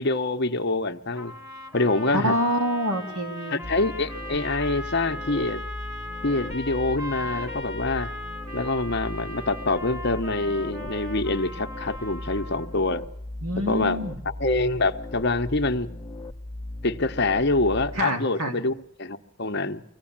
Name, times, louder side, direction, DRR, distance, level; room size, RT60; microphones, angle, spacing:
voice 1, 0.0-1.3 1.7-2.4 3.5-5.6 6.2-8.1 8.5-13.0 13.7-14.0 14.4-15.9 16.8-19.8, left 2 dB, 50° left, 1.1 m, -25 dB
sound 1, 1.2-12.8, left 1 dB, 15° right, 1.9 m, -38 dB
voice 2, 2.1-3.6 13.4-14.2 17.9-18.6, equal, 80° right, 3.1 m, -26 dB
sound 2, 3.6-18.0, left 1 dB, 15° left, 1.1 m, -38 dB
24.5 x 17.0 x 8.8 m
head